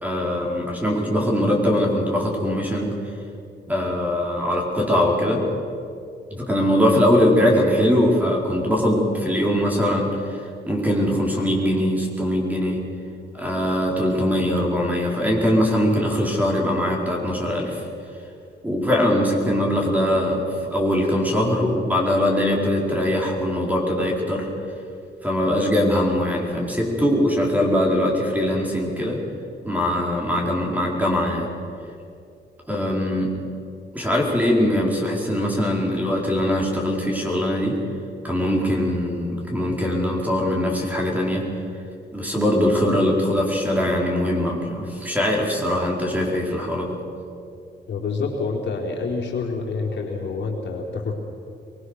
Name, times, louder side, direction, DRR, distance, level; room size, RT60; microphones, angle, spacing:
voice 1, 0.0-2.9 3.7-5.4 6.3-10.1 10.6-12.8 13.3-17.8 18.6-24.5 25.2-29.2 29.6-31.5 32.7-33.3 33.9-37.7 38.2-41.4 42.1-46.9, left 1 dB, 10° right, -1 dB, 4.5 m, -21 dB
voice 2, 47.9-51.1, left 4 dB, 75° left, -1 dB, 4.1 m, -27 dB
23.5 x 21.0 x 6.5 m, 2.5 s
cardioid pair, 120°, 19 cm